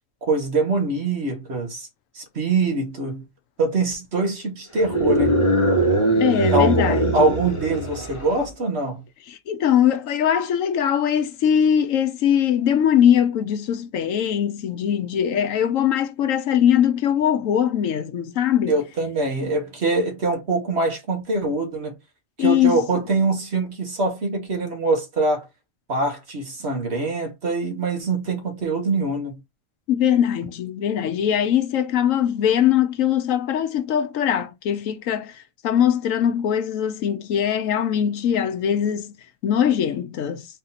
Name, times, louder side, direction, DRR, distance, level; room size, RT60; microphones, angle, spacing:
voice 1, 0.2-1.9 2.1-3.2 3.6-5.4 6.1-6.2 6.5-9.0 18.7-21.9 22.4-25.5 25.9-29.4, right 2 dB, 50° right, 1.6 m, -24 dB
sound 1, 4.8-8.4, right 2 dB, 25° left, 1.0 m, -21 dB
voice 2, 6.2-7.3 9.3-18.7 22.4-23.0 29.9-39.2 39.4-40.5, left 9 dB, 75° left, 1.0 m, -21 dB
4.2 x 2.7 x 4.0 m
omnidirectional pair, 1.4 m